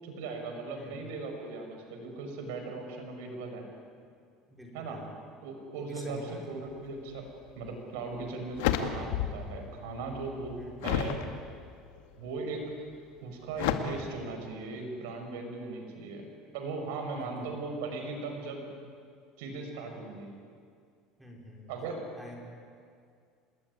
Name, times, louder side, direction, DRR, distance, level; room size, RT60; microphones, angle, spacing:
voice 1, 0.0-3.7 4.7-5.0 5.4-7.2 7.5-11.2 12.2-12.6 13.2-16.2 16.5-18.6 19.4-20.3 21.7-22.0, right 3 dB, 90° right, 4 dB, 6.2 m, -38 dB
voice 2, 4.5-5.0 5.7-6.4 10.6-10.9 17.2-17.5 21.2-21.7 22.2-22.4, left 1 dB, ahead, -1 dB, 4.9 m, -48 dB
sound 1, 7.6-7.7 8.2-9.5 9.9-11.2 11.8-12.3 13.6-13.8, left 11 dB, 85° left, 2.1 m, -31 dB
27.0 x 20.5 x 9.8 m, 2.2 s
cardioid pair, 155°, 0 cm